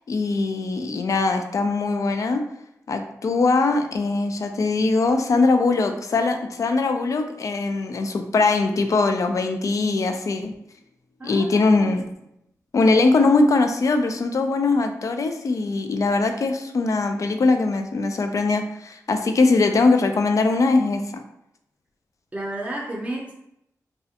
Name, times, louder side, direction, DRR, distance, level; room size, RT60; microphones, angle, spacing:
voice 1, 0.1-2.4 2.9-10.5 11.2-12.0 12.7-21.2, left 3 dB, 55° left, 6 dB, 0.3 m, -21 dB
voice 2, 11.2-11.9 22.3-23.3, right 1 dB, 20° right, -3 dB, 0.5 m, -32 dB
2.4 x 2.1 x 2.7 m, 0.81 s
cardioid pair, 75°, 7 cm